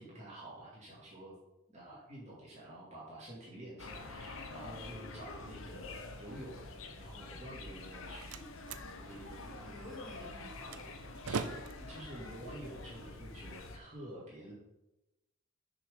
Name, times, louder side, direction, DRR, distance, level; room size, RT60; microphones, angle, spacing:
voice 1, 0.0-1.3 1.7-8.3 9.0-9.7 11.2-14.5, right 1 dB, 30° right, -7 dB, 2.2 m, -49 dB
sound 1, 3.8-13.8, left 3 dB, 70° left, 0.9 m, -47 dB
Slam, 7.7-13.7, right 5 dB, 85° right, 0.6 m, -45 dB
voice 2, 9.6-11.0, left 1 dB, 5° left, -8 dB, 3.3 m, -51 dB
6.6 x 6.4 x 5.4 m, 0.97 s
head